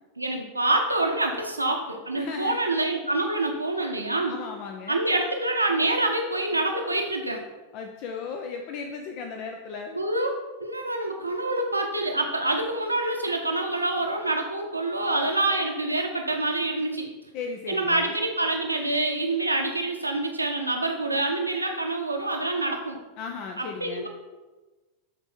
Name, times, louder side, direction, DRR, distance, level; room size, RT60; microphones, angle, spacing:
voice 1, 0.2-4.3 4.9-7.4 9.9-17.1 17.7-23.0 23.6-24.1, right 2 dB, 85° right, 3 dB, 1.2 m, -26 dB
voice 2, 2.2-2.6 4.3-5.0 7.7-10.1 17.3-18.2 23.2-24.1, left 5 dB, 45° left, 4 dB, 0.7 m, -36 dB
12.0 x 4.5 x 4.5 m, 1.2 s
figure-of-eight pair, 90°, 0 cm